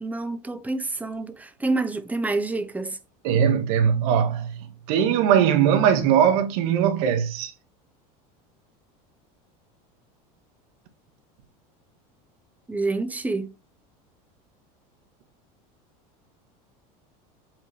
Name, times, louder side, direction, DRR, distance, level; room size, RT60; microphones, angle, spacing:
voice 1, 0.0-3.0 12.7-13.5, right 3 dB, 10° right, 1.0 m, -28 dB
voice 2, 3.2-4.6 4.9-7.5, right 8 dB, 75° right, 1.9 m, -20 dB
7.5 x 5.6 x 3.4 m
supercardioid pair, 120°, 19 cm